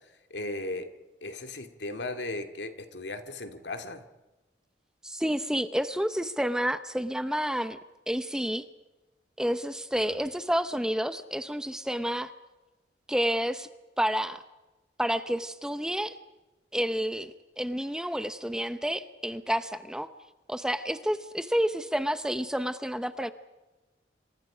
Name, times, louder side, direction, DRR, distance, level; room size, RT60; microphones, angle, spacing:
voice 1, 0.3-0.9 1.2-4.0 10.1-10.2, left 2 dB, 75° left, 7 dB, 2.4 m, -36 dB
voice 2, 5.0-7.8 8.1-8.6 9.4-12.3 13.1-13.7 14.0-14.4 15.0-16.1 16.7-20.1 20.5-23.3, equal, 5° right, 11 dB, 0.8 m, -29 dB
27.5 x 26.5 x 5.1 m, 1.1 s
head